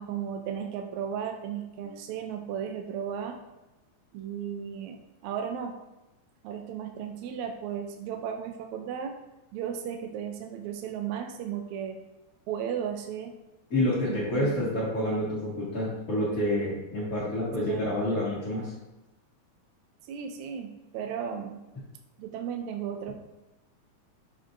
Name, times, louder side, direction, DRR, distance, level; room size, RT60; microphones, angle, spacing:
voice 1, 0.0-3.4 4.1-5.0 5.2-5.8 6.4-9.2 9.5-12.0 12.5-13.3 14.0-14.8 17.7-17.8 20.0-21.6 22.2-23.1, right 8 dB, 80° right, 4 dB, 1.9 m, -35 dB
voice 2, 13.7-18.7, left 1 dB, 35° left, -10 dB, 1.8 m, -28 dB
7.9 x 6.5 x 2.6 m, 1.0 s
omnidirectional pair, 3.5 m